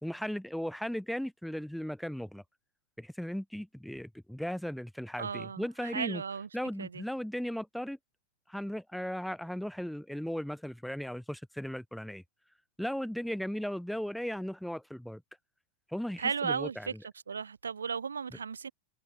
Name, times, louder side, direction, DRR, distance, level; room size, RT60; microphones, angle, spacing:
voice 1, 0.0-2.4 3.0-6.2 6.5-8.0 8.5-12.2 12.8-15.2 15.9-16.9, equal, ahead, 0.6 m, -36 dB
voice 2, 5.2-6.5 6.8-7.0 16.2-16.9 17.3-18.7, right 6 dB, 80° right, 2.4 m, -35 dB
figure-of-eight pair, 95°, 0 cm